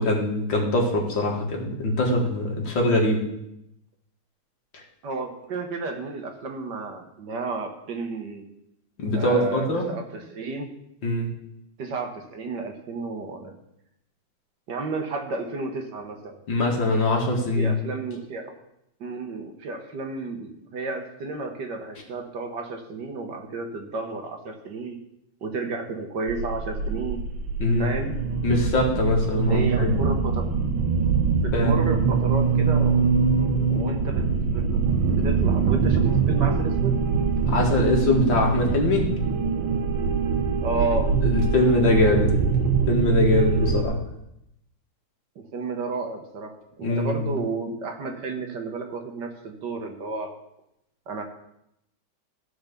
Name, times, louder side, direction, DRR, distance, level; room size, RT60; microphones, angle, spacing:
voice 1, 0.0-3.2 9.0-9.9 11.0-11.3 16.5-17.8 27.6-27.9 28.4-30.0 31.5-31.7 37.5-39.1 41.2-42.3 42.9-44.0 46.8-47.3, left 1 dB, 65° left, 0 dB, 2.5 m, -22 dB
voice 2, 5.0-8.4 9.1-10.8 11.8-13.5 14.7-16.4 17.6-18.5 19.0-25.0 25.4-27.2 27.8-28.2 29.5-30.8 31.4-33.1 33.7-34.8 35.1-37.0 40.6-41.1 45.4-50.3 51.1-51.2, right 3 dB, 60° right, 3 dB, 1.7 m, -32 dB
sound 1, 26.3-43.8, right 5 dB, 80° right, 1.8 m, -23 dB
13.5 x 4.8 x 6.8 m, 0.81 s
omnidirectional pair, 2.2 m